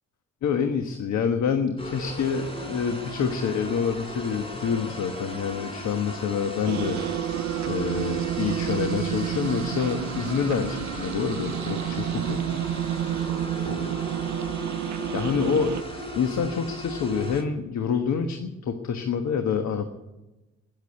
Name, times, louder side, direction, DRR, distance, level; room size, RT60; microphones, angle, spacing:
voice 1, 0.4-7.0 7.6-12.4 13.7-13.9 15.1-19.9, left 6 dB, 65° left, 6 dB, 1.4 m, -27 dB
sound 1, 1.8-17.4, equal, 20° left, 4.2 m, -37 dB
sound 2, 6.7-15.8, right 12 dB, 70° right, 0.6 m, -30 dB
20.0 x 7.4 x 9.6 m, 1.1 s
cardioid pair, 90°, 30 cm